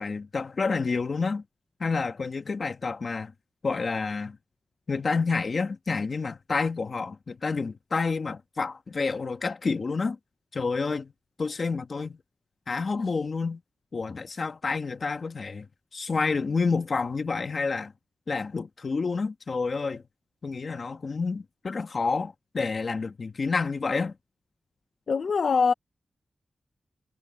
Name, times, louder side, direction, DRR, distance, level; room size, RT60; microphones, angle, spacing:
voice 1, 0.0-1.4 1.8-3.3 3.6-4.4 4.9-10.2 10.5-11.1 11.4-12.2 12.7-13.6 13.9-15.7 15.9-17.9 18.3-20.0 20.4-24.2, left 4 dB, 45° left, 2.1 m, -29 dB
voice 2, 25.1-25.7, left 5 dB, 60° left, 1.0 m, -23 dB
wide cardioid pair, 165°, 0 cm